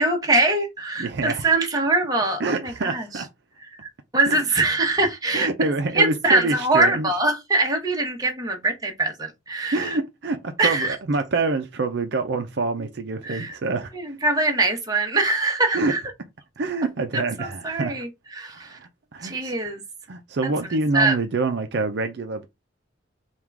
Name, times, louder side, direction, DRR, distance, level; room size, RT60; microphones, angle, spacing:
voice 1, 0.0-3.0 4.1-5.5 5.9-10.0 10.6-10.9 13.2-13.5 13.9-16.0 17.1-18.1 18.3-18.8 19.2-19.8 20.9-21.2, right 2 dB, 20° right, 0.9 m, -23 dB
voice 2, 1.0-1.5 2.4-3.3 4.3-4.5 5.3-7.1 9.7-14.1 15.7-15.9 16.6-18.0 18.5-19.5 20.1-22.5, right 3 dB, 60° right, 0.5 m, -26 dB
3.6 x 2.3 x 4.5 m
head